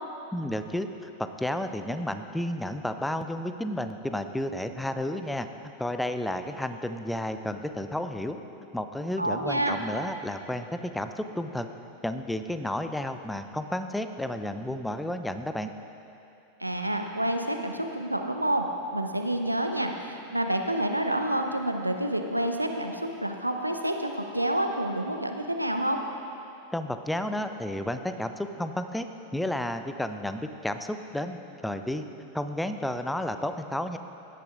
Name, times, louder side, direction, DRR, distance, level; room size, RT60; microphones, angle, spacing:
voice 1, 0.3-8.4 8.7-11.7 12.0-15.7 26.7-29.1 29.3-32.0 32.3-34.0, left 1 dB, 5° left, 8 dB, 0.5 m, -32 dB
voice 2, 9.2-9.8 16.6-18.7 18.9-26.0, right 1 dB, 85° right, 4 dB, 0.7 m, -28 dB
17.0 x 11.0 x 2.6 m, 2.8 s
figure-of-eight pair, 90°, 0 cm